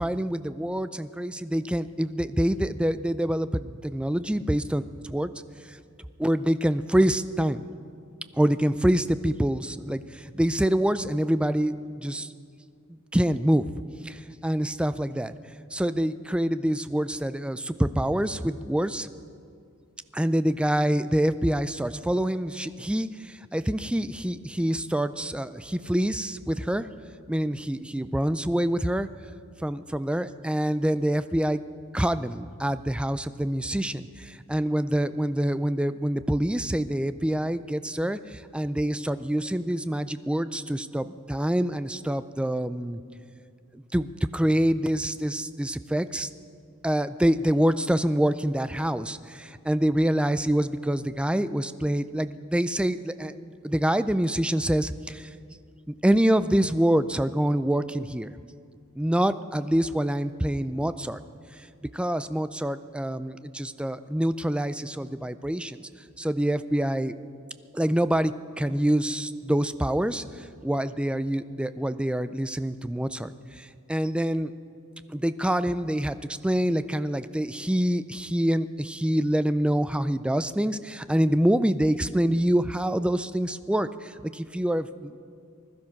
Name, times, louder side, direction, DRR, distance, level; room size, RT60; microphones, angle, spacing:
voice 1, 0.0-4.8 5.1-5.3 5.7-5.8 6.2-7.7 8.4-12.3 13.1-13.7 14.0-15.3 15.7-19.1 20.1-26.9 27.3-29.1 29.6-31.6 31.9-43.0 43.7-46.3 46.8-55.3 56.0-58.3 59.0-61.2 61.9-65.8 66.2-67.1 67.7-74.5 75.1-76.2 76.4-85.2, right 1 dB, 5° right, 13 dB, 0.4 m, -26 dB
20.0 x 12.5 x 5.8 m, 2.3 s
head